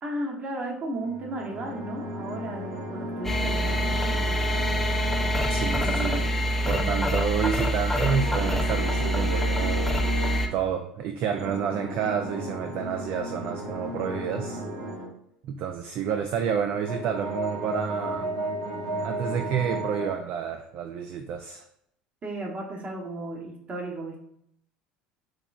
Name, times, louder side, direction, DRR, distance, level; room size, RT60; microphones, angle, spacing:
voice 1, 0.0-4.2 5.6-6.3 6.7-7.2 22.2-24.2, right 1 dB, 35° right, 0 dB, 1.1 m, -35 dB
sound 1, 1.0-7.1 8.0-10.5 11.3-15.1 16.4-20.1, right 1 dB, 70° right, 1.4 m, -34 dB
sound 2, 3.2-10.5, equal, 5° left, 0.5 m, -25 dB
voice 2, 5.5-6.3 6.7-9.9 10.5-14.6 15.4-18.3 19.0-21.6, right 7 dB, 50° right, 5 dB, 0.3 m, -29 dB
3.8 x 3.0 x 2.4 m, 0.73 s
hypercardioid pair, 70°, 4 cm